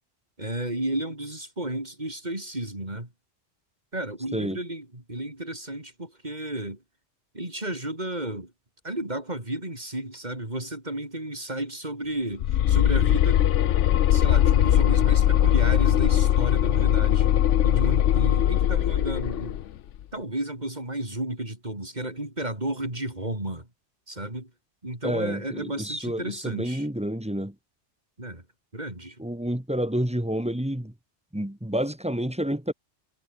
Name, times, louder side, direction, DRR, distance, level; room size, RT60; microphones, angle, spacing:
voice 1, 0.4-3.1 3.9-6.8 7.3-8.5 8.8-13.4 14.1-17.4 17.6-19.6 20.1-23.7 24.1-24.5 24.8-26.9 28.2-28.4 28.7-29.2, right 1 dB, 35° right, 5.7 m, -33 dB
sound 1, 12.4-19.6, left 11 dB, 85° left, 1.0 m, -20 dB
voice 2, 25.0-27.5 29.2-30.9 31.3-32.7, equal, 5° right, 1.7 m, -29 dB
omnidirectional pair, 1.2 m